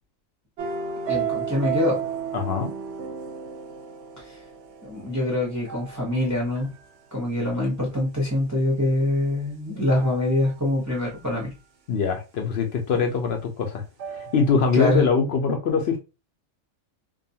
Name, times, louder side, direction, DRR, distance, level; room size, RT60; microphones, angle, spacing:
sound 1, 0.6-6.8 10.0-10.6 10.9-11.2 14.0-14.6 14.9-15.0, right 7 dB, 65° right, 0.8 m, -33 dB
voice 1, 1.1-2.0 4.8-6.7 7.1-11.5 14.7-15.0, left 1 dB, 15° right, -2 dB, 0.7 m, -24 dB
voice 2, 2.3-2.7 11.9-16.0, left 5 dB, 60° left, 4 dB, 0.7 m, -23 dB
2.6 x 2.3 x 2.7 m, 0.28 s
omnidirectional pair, 1.4 m